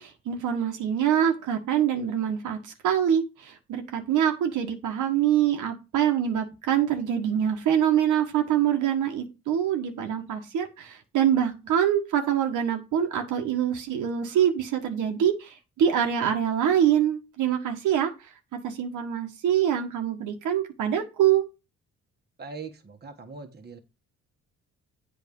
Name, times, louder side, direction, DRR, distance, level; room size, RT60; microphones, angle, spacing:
voice 1, 0.0-18.1 18.6-21.4, right 9 dB, 80° right, 4 dB, 1.5 m, -25 dB
voice 2, 22.4-23.8, right 4 dB, 35° right, 5 dB, 1.5 m, -41 dB
8.1 x 4.1 x 5.3 m, 0.27 s
cardioid pair, 90°, 30 cm